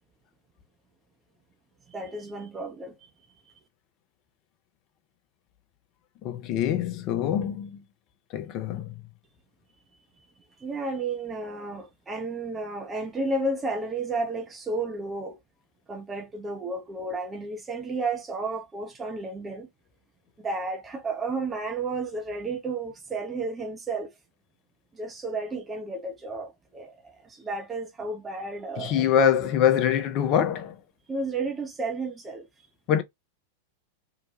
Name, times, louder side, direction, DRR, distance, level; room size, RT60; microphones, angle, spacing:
voice 1, 1.9-3.0 10.6-15.4 15.9-19.7 20.4-24.2 24.9-29.3 31.1-32.7, right 3 dB, 15° right, 0.5 m, -32 dB
voice 2, 6.2-7.8 8.3-8.9 28.8-30.8 32.9-33.0, left 9 dB, 40° left, 0.6 m, -24 dB
2.8 x 2.2 x 2.8 m
figure-of-eight pair, 90°, 0 cm